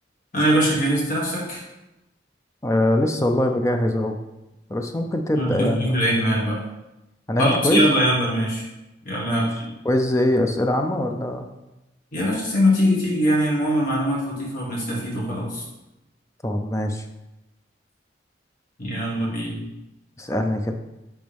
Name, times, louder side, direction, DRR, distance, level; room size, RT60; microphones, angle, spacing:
voice 1, 0.3-1.6 5.3-6.6 7.4-8.6 9.1-9.7 12.1-15.6 18.8-19.6, equal, 45° left, -5 dB, 1.7 m, -22 dB
voice 2, 2.6-4.2 4.7-6.0 7.3-7.9 9.2-9.5 9.8-11.5 16.4-17.0 20.2-20.7, left 1 dB, 15° left, 5 dB, 0.5 m, -22 dB
10.5 x 3.5 x 3.5 m, 0.96 s
head